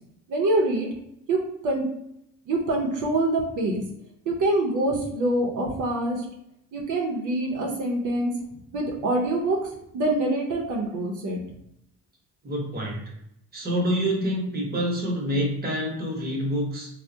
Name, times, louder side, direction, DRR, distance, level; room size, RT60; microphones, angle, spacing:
voice 1, 0.3-0.9 1.3-1.8 2.5-3.8 4.3-6.2 6.7-8.3 8.7-11.4, right 2 dB, 85° right, 0 dB, 0.7 m, -25 dB
voice 2, 12.4-13.1 13.5-16.9, equal, 30° right, -1 dB, 1.0 m, -27 dB
3.3 x 2.1 x 2.6 m, 0.78 s
cardioid pair, 90°, 30 cm